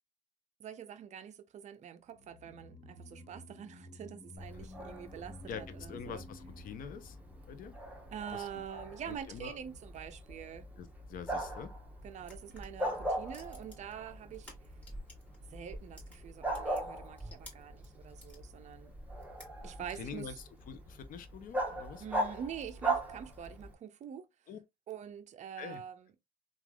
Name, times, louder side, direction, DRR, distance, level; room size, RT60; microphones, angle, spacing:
voice 1, 0.6-6.2 8.1-10.7 12.0-14.5 15.5-18.9 19.6-20.4 22.0-24.3 24.9-26.1, right 8 dB, 45° right, 0.5 m, -45 dB
sound 1, 2.1-8.5 8.7-8.8, left 1 dB, 30° left, 1.0 m, -53 dB
Bark, 4.4-23.7, right 1 dB, 10° right, 0.9 m, -40 dB
voice 2, 5.5-7.2 7.5-7.7 8.3-8.5 9.1-9.6 10.8-11.7 20.0-20.3 20.7-22.0 24.5-24.6 25.6-25.8, left 7 dB, 55° left, 0.6 m, -45 dB
sound 2, 12.2-15.4 15.6-18.4 18.9-20.0, equal, 10° left, 1.6 m, -51 dB
3.2 x 2.4 x 2.2 m
cardioid pair, 110°, 17 cm